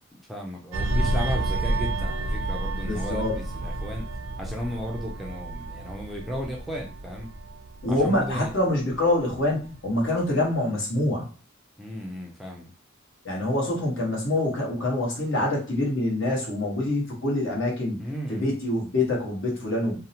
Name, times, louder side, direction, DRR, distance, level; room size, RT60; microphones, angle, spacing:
voice 1, 0.3-4.1 4.4-7.3 7.9-8.5 11.8-12.7 18.0-18.5, equal, ahead, -1 dB, 0.4 m, -34 dB
sound 1, 0.7-9.8 10.1-10.4, right 1 dB, 75° right, 0.4 m, -30 dB
voice 2, 2.8-3.3 7.8-11.3 13.2-18.0 18.3-20.0, left 1 dB, 65° left, -2 dB, 1.0 m, -25 dB
2.6 x 2.0 x 2.7 m, 0.36 s
head